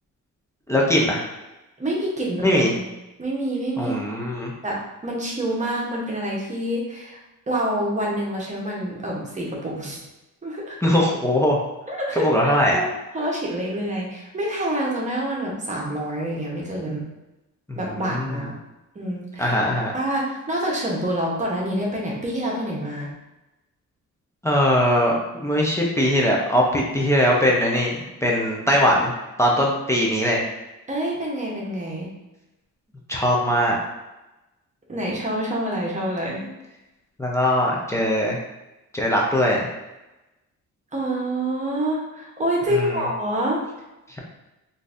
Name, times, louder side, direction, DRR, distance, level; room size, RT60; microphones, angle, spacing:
voice 1, 0.7-1.3 2.4-2.7 3.8-4.5 10.8-11.6 12.2-12.8 17.7-18.4 19.4-19.9 24.4-29.1 29.4-30.4 33.1-33.8 37.2-38.4 38.9-39.7 42.7-43.1, equal, 10° left, -3 dB, 0.5 m, -21 dB
voice 2, 1.8-2.9 3.2-4.0 4.6-7.2 7.5-10.0 10.4-10.8 11.9-12.3 12.7-12.9 13.1-17.0 17.7-18.6 18.9-19.5 19.9-23.1 30.9-32.1 34.9-36.5 40.9-43.6, right 1 dB, 25° right, -3 dB, 0.8 m, -27 dB
3.8 x 2.6 x 2.4 m, 1.0 s
wide cardioid pair, 140°, 32 cm